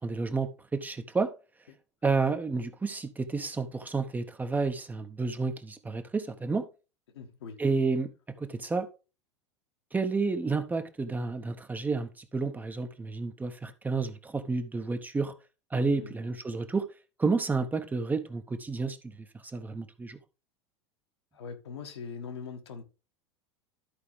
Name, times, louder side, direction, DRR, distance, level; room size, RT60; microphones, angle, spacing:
voice 1, 0.0-1.3 2.0-6.7 7.6-8.1 8.4-8.9 9.9-15.3 15.7-16.9 17.2-19.3 19.5-20.2, right 4 dB, 10° right, 0.8 m, -30 dB
voice 2, 7.1-7.6 15.9-16.2 21.3-22.8, left 6 dB, 65° left, 1.5 m, -42 dB
13.0 x 4.8 x 3.3 m
figure-of-eight pair, 85°, 15 cm